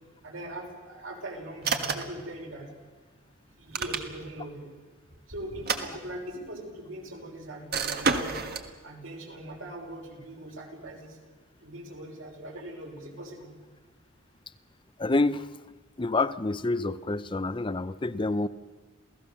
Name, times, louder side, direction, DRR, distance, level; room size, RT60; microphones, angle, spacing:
voice 1, 0.2-2.7 3.6-4.7 5.3-8.4 8.8-11.2 11.6-13.5, right 1 dB, 90° right, 1 dB, 5.6 m, -41 dB
sound 1, 1.6-2.2 3.5-4.4 5.5-6.5 7.7-8.7, right 5 dB, 50° right, 1.7 m, -30 dB
voice 2, 15.0-15.5 16.0-18.5, left 2 dB, 25° left, 14 dB, 0.6 m, -27 dB
28.0 x 17.0 x 7.0 m, 1.4 s
head